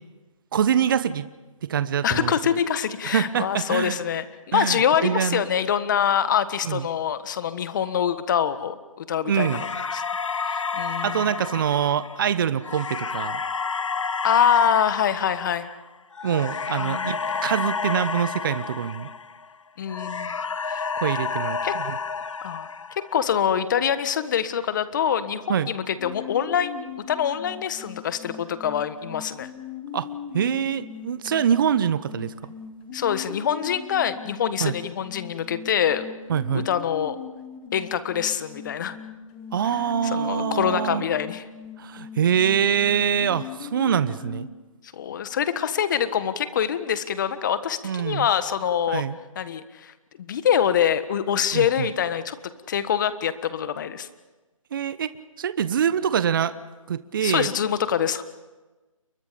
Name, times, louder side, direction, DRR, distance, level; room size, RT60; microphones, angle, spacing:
voice 1, 0.5-1.3 1.6-2.6 3.1-4.0 4.5-5.4 6.6-6.8 9.3-9.7 11.0-13.4 16.2-19.1 21.0-22.0 25.5-25.7 29.9-30.1 30.3-32.3 34.6-34.7 36.3-36.7 39.5-41.0 41.8-44.5 47.8-48.3 48.9-49.2 51.5-51.7 54.7-55.1 55.4-56.6 56.9-57.5, right 8 dB, 40° right, 15 dB, 1.0 m, -24 dB
voice 2, 2.0-9.7 9.9-10.0 10.4-11.3 14.2-15.7 16.8-17.5 19.8-20.4 20.6-20.9 21.6-21.7 22.4-22.7 23.1-29.5 32.9-36.1 36.5-37.2 37.7-39.0 40.0-41.4 44.9-49.0 49.3-52.4 52.7-54.1 57.2-58.2, left 8 dB, 35° left, 13 dB, 1.4 m, -25 dB
sound 1, 9.3-19.5 19.9-23.3, left 5 dB, 65° left, 1.4 m, -30 dB
sound 2, 26.0-44.5, left 8 dB, 15° left, 1.1 m, -40 dB
30.0 x 22.5 x 5.2 m, 1.2 s
figure-of-eight pair, 155°, 17 cm